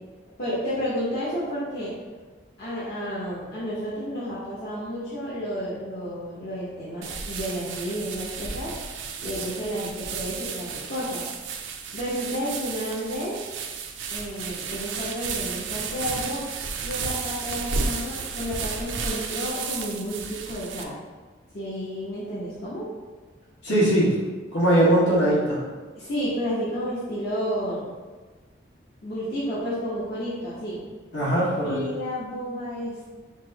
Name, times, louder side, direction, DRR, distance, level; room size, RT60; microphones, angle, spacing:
voice 1, 0.4-1.9 2.6-8.7 9.2-11.3 11.9-13.4 14.1-16.4 16.8-21.0 21.5-22.9 26.0-27.9 29.0-30.8 31.6-33.1, equal, 55° left, -11 dB, 0.9 m, -31 dB
sound 1, 7.0-20.8, right 5 dB, 85° right, 0.4 m, -33 dB
voice 2, 23.6-24.2 24.5-25.6 31.1-31.8, right 1 dB, 75° left, -7 dB, 1.4 m, -20 dB
5.8 x 2.1 x 2.8 m, 1.3 s
head